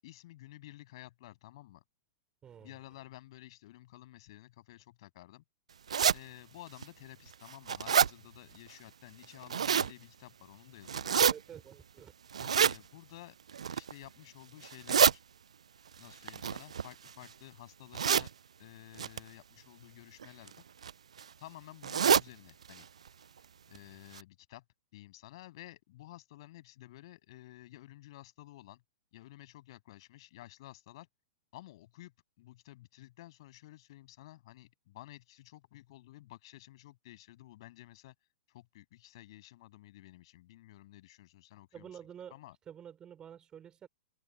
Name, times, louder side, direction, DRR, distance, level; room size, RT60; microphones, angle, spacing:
voice 1, 0.0-1.8 2.6-5.4 6.1-11.2 12.4-13.4 13.7-15.2 16.0-18.3 18.6-20.6 21.4-22.9 23.7-24.6 24.9-28.8 29.1-31.1 31.5-38.1 38.5-41.9 42.3-42.6, left 16 dB, 50° left, 7.9 m, -52 dB
voice 2, 2.4-2.7 11.2-12.1 41.7-42.4 42.7-43.9, right 9 dB, 20° right, 4.0 m, -49 dB
sound 1, 5.9-6.2 6.8-6.9 7.3-8.1 9.2-9.9 10.9-11.3 12.3-12.8 13.5-13.9 14.6-15.1 16.3-17.3 17.9-18.3 19.0-19.2 20.2-20.5 20.8-20.9 21.2-21.3 21.8-22.3 22.7-22.8 23.1-23.2 23.7-23.8 24.1-24.2, right 7 dB, 65° right, 0.7 m, -27 dB
open air
figure-of-eight pair, 100°, 4 cm